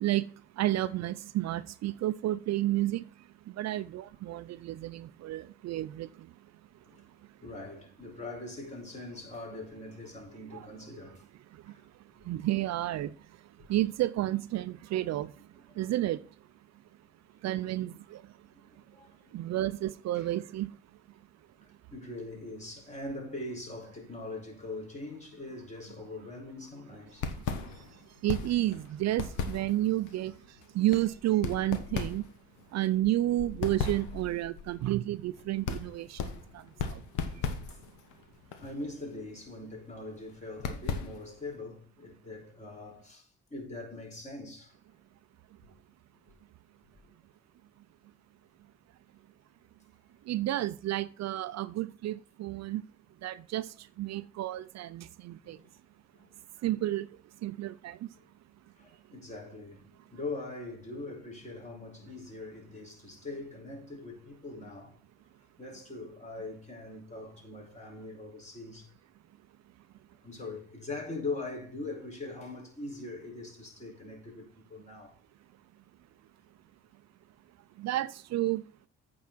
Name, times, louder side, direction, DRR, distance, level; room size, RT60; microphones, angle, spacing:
voice 1, 0.6-3.0 3.6-6.1 10.5-10.7 12.3-13.1 13.7-15.3 15.8-16.2 17.4-18.2 19.3-20.7 28.2-30.3 30.7-32.3 32.7-36.2 36.5-36.6 36.9-37.0 50.3-52.8 53.2-53.7 54.0-55.6 56.6-57.1 57.4-58.0 77.8-78.6, right 15 dB, 60° right, 0.5 m, -31 dB
voice 2, 7.4-11.2 11.7-11.9 13.6-13.7 15.7-15.9 18.5-19.4 20.1-20.3 21.6-27.3 38.3-44.8 45.7-45.8 55.4-55.7 56.1-56.3 58.2-58.3 58.8-65.0 65.6-68.9 70.2-75.1, left 2 dB, 25° left, 4.8 m, -42 dB
sound 1, 27.1-41.5, left 5 dB, 85° left, 1.2 m, -38 dB
8.5 x 4.7 x 6.0 m
supercardioid pair, 65°, 30 cm